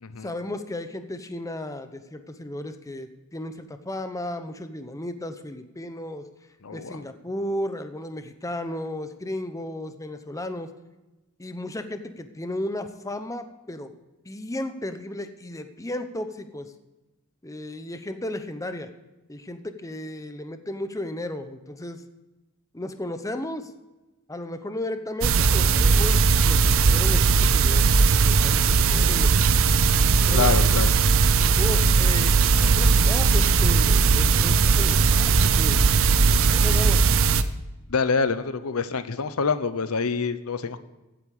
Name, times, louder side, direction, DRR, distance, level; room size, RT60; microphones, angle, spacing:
voice 1, 0.2-6.3 6.7-10.7 11.4-13.9 14.3-16.7 17.4-18.9 19.3-22.0 22.7-23.7 24.3-29.4 30.3-30.6 31.6-35.8 36.5-37.3, left 1 dB, 15° left, 9 dB, 0.8 m, -34 dB
voice 2, 6.6-7.0 30.3-31.0 37.9-40.8, left 5 dB, 75° left, 12 dB, 0.7 m, -26 dB
sound 1, 25.2-37.4, right 4 dB, 65° right, 0.7 m, -19 dB
15.5 x 8.9 x 4.9 m, 1.0 s
head